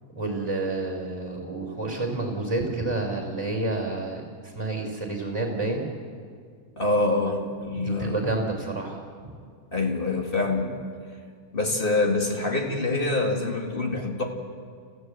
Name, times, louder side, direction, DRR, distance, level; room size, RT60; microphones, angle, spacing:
voice 1, 0.2-5.9 7.7-9.0, right 2 dB, 15° right, 1 dB, 3.5 m, -29 dB
voice 2, 6.8-8.3 9.7-10.7 11.5-14.2, left 2 dB, 40° left, 1 dB, 2.4 m, -25 dB
29.0 x 15.0 x 7.9 m, 2.1 s
omnidirectional pair, 1.5 m